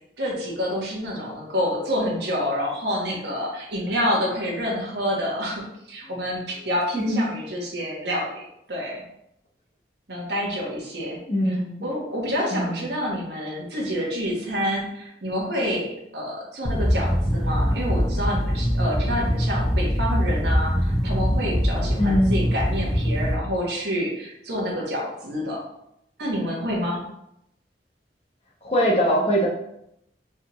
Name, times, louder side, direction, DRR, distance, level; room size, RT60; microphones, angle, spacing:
voice 1, 0.2-8.4 8.7-9.0 10.1-11.2 11.5-11.6 11.8-25.6 26.2-27.0, equal, 75° right, -3 dB, 1.2 m, -28 dB
voice 2, 11.3-11.9 12.5-12.9 22.0-22.4 28.6-29.5, equal, 35° left, -2 dB, 0.9 m, -22 dB
sound 1, 16.6-23.3, equal, 5° left, 0.4 m, -23 dB
4.4 x 3.4 x 3.0 m, 0.79 s
head